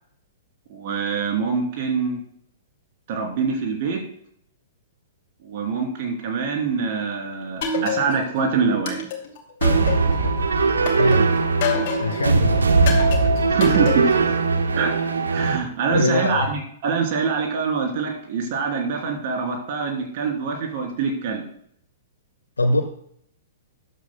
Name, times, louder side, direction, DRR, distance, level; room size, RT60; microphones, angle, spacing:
voice 1, 0.7-2.2 3.1-4.0 5.4-9.0 13.5-14.2 14.7-14.9 15.3-21.4, right 5 dB, 45° right, 2 dB, 3.0 m, -24 dB
sound 1, 7.6-8.4 8.9-10.3 10.9-12.3 12.9-14.3, left 3 dB, 45° left, 2.6 m, -27 dB
sound 2, 9.6-15.6, right 4 dB, 75° right, 1.1 m, -20 dB
voice 2, 10.9-11.3 12.0-12.7 15.9-16.5 22.6-22.8, left 2 dB, 75° left, 3 dB, 1.1 m, -22 dB
14.0 x 10.5 x 2.2 m, 0.67 s
figure-of-eight pair, 110°, 0 cm